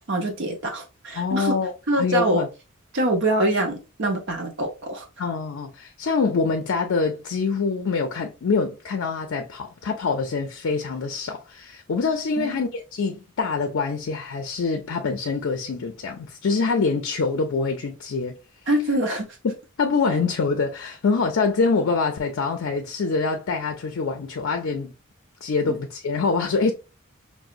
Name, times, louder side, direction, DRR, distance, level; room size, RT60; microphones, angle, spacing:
voice 1, 0.1-1.6 1.9-2.4 2.9-5.1 12.4-12.6 18.7-19.3, right 1 dB, 60° right, 0.7 m, -24 dB
voice 2, 1.2-1.7 2.0-2.5 5.2-18.4 19.4-24.9 25.4-26.7, left 4 dB, 65° left, 0.4 m, -25 dB
4.8 x 2.0 x 2.5 m
head